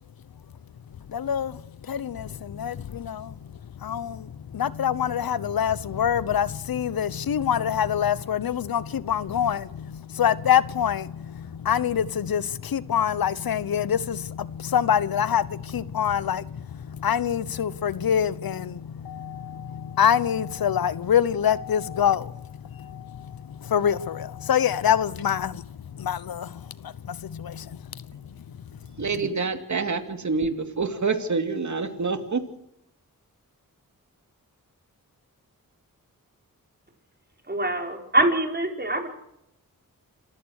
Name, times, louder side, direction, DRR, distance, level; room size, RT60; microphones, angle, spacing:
voice 1, 1.1-1.6 1.9-27.8, left 9 dB, 80° left, 1.0 m, -26 dB
voice 2, 29.0-32.4, right 4 dB, 55° right, 2.8 m, -27 dB
voice 3, 37.5-39.1, right 1 dB, 30° right, 4.9 m, -24 dB
27.0 x 15.5 x 6.5 m
cardioid pair, 65°, 35 cm